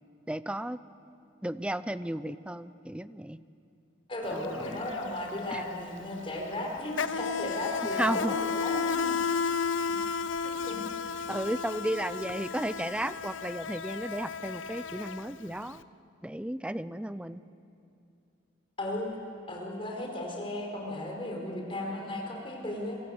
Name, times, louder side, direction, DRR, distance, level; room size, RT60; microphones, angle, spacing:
voice 1, 0.3-0.8 1.4-3.4 4.3-4.8 5.5-5.6 8.0-8.3 11.3-15.8 16.2-17.4, right 1 dB, 5° right, 14 dB, 0.5 m, -34 dB
voice 2, 4.1-9.1 10.4-10.8 18.8-19.1 19.5-23.0, left 1 dB, 30° left, 0 dB, 4.6 m, -35 dB
Insect, 4.3-4.5 4.7-15.7, left 5 dB, 85° left, 0.7 m, -33 dB
25.5 x 25.0 x 7.9 m, 2.6 s
head